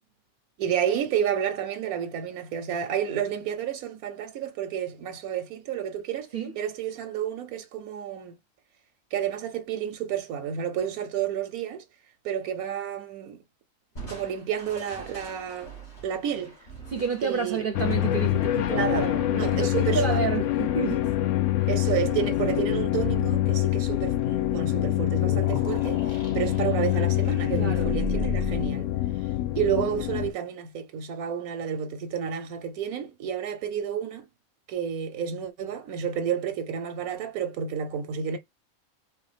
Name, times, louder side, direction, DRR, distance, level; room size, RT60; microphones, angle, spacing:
voice 1, 0.6-8.4 9.1-11.8 12.2-13.4 14.1-15.7 16.0-16.5 17.2-17.6 18.7-19.1 19.4-20.3 21.7-28.9 29.6-34.3 34.7-38.4, right 8 dB, 85° right, 1.2 m, -30 dB
Crushing, 14.0-19.3, right 3 dB, 50° left, 2.2 m, -46 dB
voice 2, 16.9-21.1 21.6-21.7 22.1-22.2 27.5-27.9, right 5 dB, 50° right, 0.7 m, -30 dB
sound 1, 17.7-30.3, left 15 dB, 70° left, 0.9 m, -25 dB
sound 2, 23.0-28.6, right 1 dB, 30° left, 1.1 m, -36 dB
4.4 x 3.3 x 3.3 m
omnidirectional pair, 1.5 m